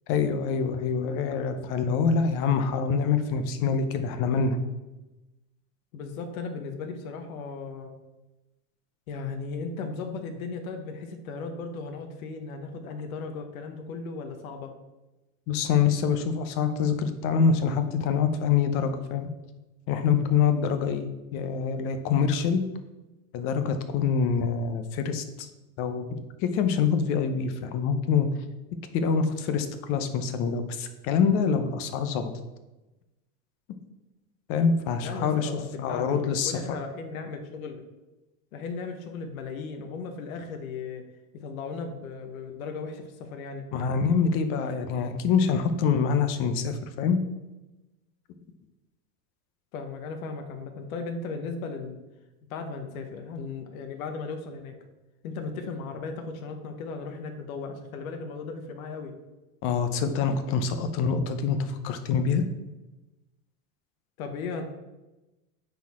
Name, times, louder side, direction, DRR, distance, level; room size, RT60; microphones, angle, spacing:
voice 1, 0.1-4.6 15.5-19.3 19.9-22.6 23.3-25.5 25.8-28.3 28.9-32.3 34.5-35.5 35.8-36.5 43.7-47.2 59.6-62.4, left 6 dB, 30° left, 8 dB, 0.6 m, -25 dB
voice 2, 5.9-7.9 9.1-14.7 35.0-37.8 38.5-41.1 41.3-43.7 49.7-52.0 52.5-54.7 55.2-59.1 64.2-64.7, left 4 dB, 70° left, 5 dB, 1.1 m, -36 dB
9.4 x 4.3 x 4.2 m, 1.0 s
supercardioid pair, 160°, 43 cm